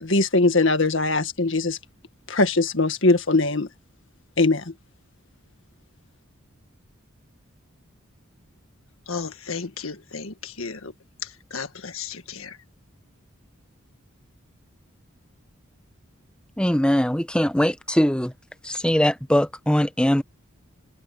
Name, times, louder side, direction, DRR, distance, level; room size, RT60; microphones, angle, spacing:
voice 1, 0.0-1.8 2.3-3.7 4.4-4.7, left 2 dB, 65° left, 1.8 m, -21 dB
voice 2, 9.1-10.9 11.2-12.6, left 5 dB, 85° left, 1.8 m, -34 dB
voice 3, 16.6-18.3 18.6-20.2, equal, 5° left, 0.8 m, -21 dB
head